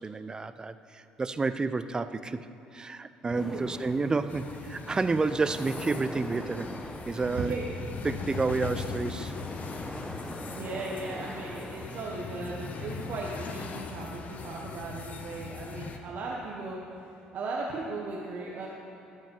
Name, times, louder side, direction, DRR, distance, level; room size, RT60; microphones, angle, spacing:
voice 1, 0.0-2.4 2.7-6.7 7.1-7.5 8.0-9.3, right 3 dB, 25° right, 12 dB, 0.4 m, -30 dB
voice 2, 3.2-3.8 7.3-7.7 10.5-18.7, right 3 dB, 60° right, -3 dB, 1.1 m, -37 dB
sound 1, 3.3-12.0, equal, 5° left, 0.8 m, -43 dB
sound 2, 4.3-16.0, left 5 dB, 50° left, 0.8 m, -40 dB
13.0 x 5.3 x 5.3 m, 2.9 s
supercardioid pair, 75°, 3 cm